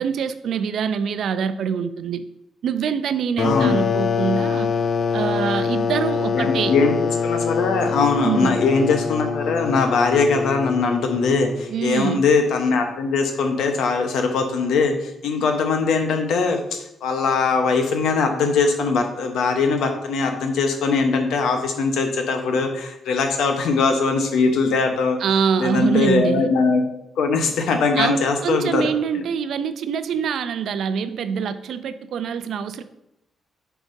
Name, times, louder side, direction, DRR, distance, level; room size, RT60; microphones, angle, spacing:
voice 1, 0.0-2.2 2.6-4.7 5.1-6.8 8.2-8.6 11.7-12.2 25.2-26.5 28.0-32.8, right 7 dB, 75° right, 11 dB, 0.4 m, -24 dB
voice 2, 3.4-3.8 6.3-6.9 7.2-25.2 25.6-26.8 27.2-28.9, left 4 dB, 85° left, 5 dB, 0.9 m, -21 dB
sound 1, 3.4-11.8, left 5 dB, 50° left, 0.3 m, -24 dB
8.9 x 4.7 x 2.7 m, 0.84 s
cardioid pair, 100°, 0 cm